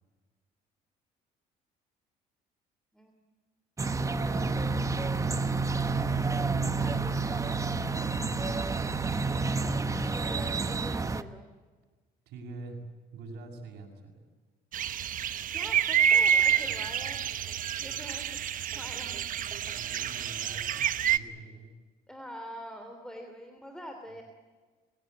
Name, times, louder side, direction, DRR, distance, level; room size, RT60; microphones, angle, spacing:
voice 1, 2.9-3.2 4.2-5.6 6.7-9.5 10.1-11.5 15.3-17.2 17.7-18.3 18.5-19.2 19.7-19.8 20.5-20.7 22.1-24.2, equal, 5° left, 4 dB, 3.2 m, -46 dB
sound 1, 3.8-11.2, right 4 dB, 20° right, 1.0 m, -29 dB
voice 2, 12.3-12.8 13.1-14.2 16.6-17.1 19.5-21.7, right 3 dB, 80° right, -1 dB, 6.4 m, -46 dB
sound 2, 14.7-21.2, right 9 dB, 55° right, 1.0 m, -28 dB
29.0 x 16.5 x 9.3 m, 1.4 s
cardioid pair, 110°, 17 cm